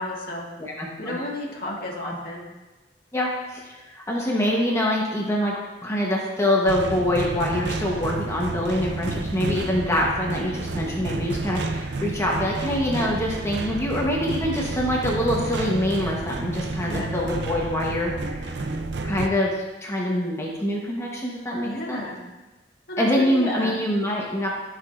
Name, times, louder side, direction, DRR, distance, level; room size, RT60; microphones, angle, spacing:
voice 1, 0.0-0.5 1.0-2.5 16.8-17.1 21.6-22.2 22.9-23.8, left 1 dB, 55° left, -2 dB, 1.7 m, -32 dB
voice 2, 0.6-1.2 2.0-2.1 3.1-5.5 5.8-18.7 19.0-22.1 23.0-24.5, left 1 dB, 15° left, -3 dB, 1.0 m, -25 dB
sound 1, 6.7-19.3, right 3 dB, 65° right, 0.6 m, -30 dB
13.5 x 5.9 x 2.5 m, 1.2 s
head